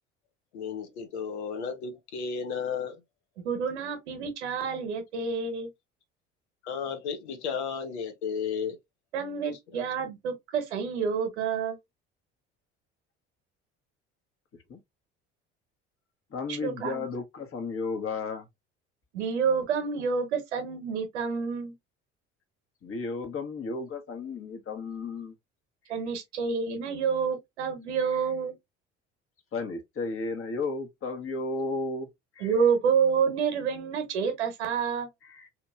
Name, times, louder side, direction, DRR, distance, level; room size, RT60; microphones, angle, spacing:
voice 1, 0.5-3.0 6.6-8.8 9.5-9.8, left 6 dB, 75° left, 0.8 m, -33 dB
voice 2, 3.4-5.7 9.1-11.8 16.5-17.1 19.1-21.7 25.9-28.5 32.4-35.1, right 6 dB, 80° right, 1.0 m, -28 dB
voice 3, 16.3-18.5 22.8-25.3 28.1-28.2 29.5-32.1 32.3-32.5 35.2-35.5, left 3 dB, 40° left, 1.2 m, -34 dB
2.9 x 2.8 x 2.3 m
hypercardioid pair, 60°, 34 cm